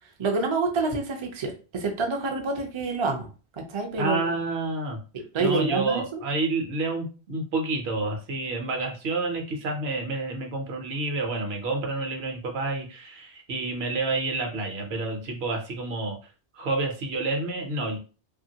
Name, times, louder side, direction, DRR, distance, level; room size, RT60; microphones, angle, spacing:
voice 1, 0.2-3.3 3.5-4.3 5.3-6.2, right 3 dB, 45° right, 2 dB, 0.4 m, -27 dB
voice 2, 4.0-5.0 5.4-16.2 16.5-18.0, right 3 dB, 65° right, 3 dB, 1.0 m, -29 dB
2.8 x 2.5 x 2.7 m, 0.35 s
omnidirectional pair, 1.2 m